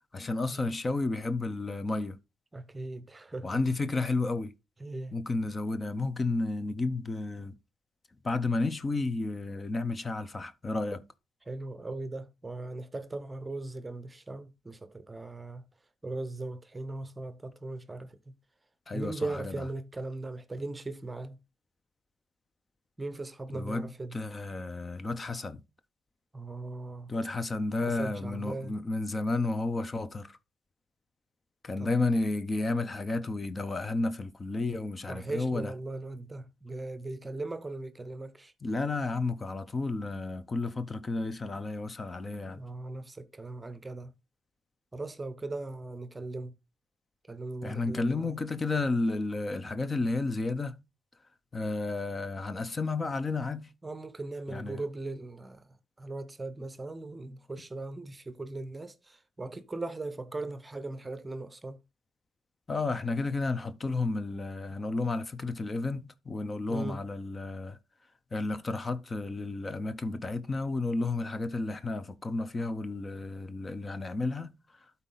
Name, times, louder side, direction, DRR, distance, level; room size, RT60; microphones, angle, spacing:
voice 1, 0.1-2.2 3.4-4.5 5.1-7.5 8.2-11.0 18.9-19.2 23.5-25.6 27.1-30.4 31.6-35.7 38.6-42.6 47.6-50.7 51.5-53.7 54.5-54.8 62.7-67.8 68.3-74.5, left 3 dB, 30° left, 0.7 m, -32 dB
voice 2, 2.5-3.6 4.8-5.2 11.5-15.7 16.0-18.3 18.9-21.4 23.0-24.4 26.3-27.1 27.8-28.8 31.8-32.0 35.1-38.5 42.4-44.1 44.9-46.5 47.2-48.4 53.8-61.8 66.7-67.1, right 2 dB, 20° right, 0.8 m, -39 dB
12.0 x 4.2 x 3.9 m
cardioid pair, 90°, 0 cm